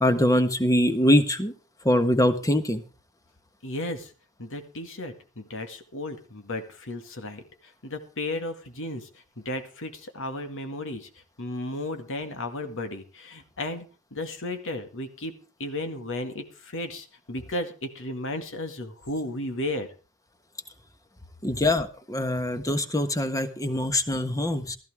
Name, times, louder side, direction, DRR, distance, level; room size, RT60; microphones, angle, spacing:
voice 1, 0.0-1.5 1.8-2.8 21.4-24.8, left 1 dB, 15° left, 8 dB, 1.4 m, -23 dB
voice 2, 3.6-4.1 4.4-11.1 11.4-19.9, left 1 dB, 60° left, 7 dB, 2.1 m, -34 dB
15.5 x 14.0 x 3.6 m, 0.35 s
head